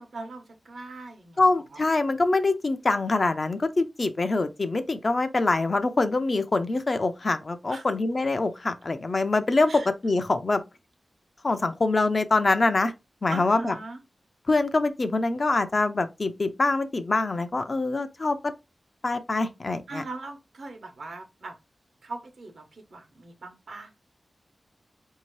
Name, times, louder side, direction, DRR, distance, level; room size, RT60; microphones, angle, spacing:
voice 1, 0.0-1.8 7.7-7.9 9.7-9.9 13.3-14.0 19.9-21.5 22.0-23.9, right 3 dB, 80° right, 0.9 m, -40 dB
voice 2, 1.4-10.6 11.4-12.9 13.2-13.7 14.5-18.5 19.0-20.0, left 3 dB, 40° left, 0.4 m, -24 dB
4.3 x 2.7 x 3.1 m
wide cardioid pair, 110°, 0 cm